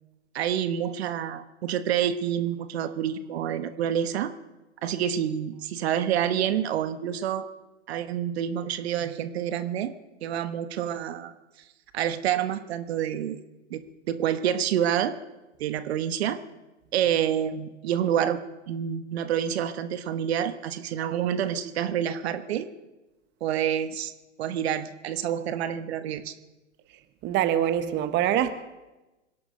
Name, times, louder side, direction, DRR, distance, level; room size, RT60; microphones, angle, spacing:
voice 1, 0.3-4.3 4.8-7.5 7.9-9.9 10.2-11.3 11.9-13.4 13.7-13.8 14.1-15.1 15.6-16.4 16.9-18.4 18.7-22.7 23.4-24.1 24.4-26.3, right 9 dB, 55° right, 1.2 m, -28 dB
voice 2, 27.2-28.5, right 11 dB, 30° right, 1.2 m, -24 dB
25.5 x 11.0 x 5.2 m
hypercardioid pair, 110°, 37 cm